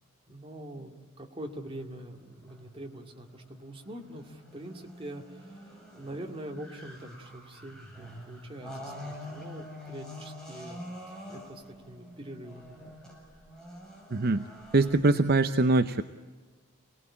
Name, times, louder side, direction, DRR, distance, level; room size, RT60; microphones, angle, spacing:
voice 1, 0.3-10.8 11.1-13.0, right 1 dB, 25° right, 2 dB, 2.3 m, -44 dB
sound 1, 1.4-14.9, equal, 5° left, 6.9 m, -46 dB
voice 2, 14.1-14.4 14.7-16.0, right 2 dB, 45° right, 10 dB, 0.7 m, -23 dB
28.5 x 19.0 x 8.6 m, 1.3 s
head